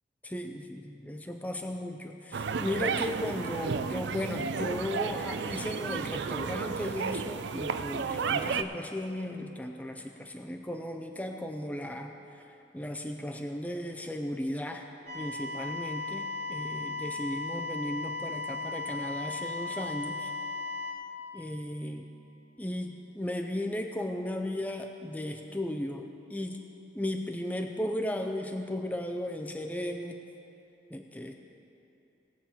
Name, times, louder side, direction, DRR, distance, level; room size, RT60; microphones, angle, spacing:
voice 1, 0.2-12.1 12.7-14.9 15.1-20.3 21.3-22.1 22.6-26.6 26.9-30.2 30.9-31.3, left 1 dB, 10° left, 4 dB, 0.4 m, -35 dB
sound 1, 2.3-8.6, right 5 dB, 70° right, 0.4 m, -32 dB
sound 2, 15.1-20.9, left 3 dB, 35° right, 1.4 m, -36 dB
18.5 x 7.0 x 4.4 m, 2.9 s
head